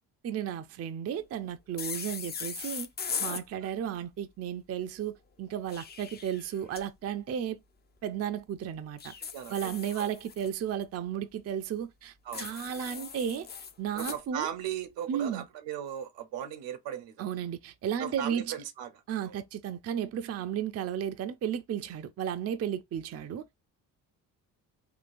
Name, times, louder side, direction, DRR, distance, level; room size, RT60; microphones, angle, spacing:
voice 1, 0.2-2.9 3.2-7.6 8.0-9.1 9.5-13.5 13.8-14.5 15.1-15.4 17.2-18.5 19.1-23.4, right 9 dB, 35° right, 0.4 m, -34 dB
sound 1, 1.8-3.4 5.5-6.8 9.0-10.5 12.3-14.2, left 6 dB, 25° left, 0.4 m, -39 dB
voice 2, 9.3-10.1 12.2-12.6 13.9-17.3 18.0-18.9 19.2-19.4, right 10 dB, 75° right, 0.9 m, -38 dB
3.8 x 2.2 x 2.5 m
supercardioid pair, 65°, 44 cm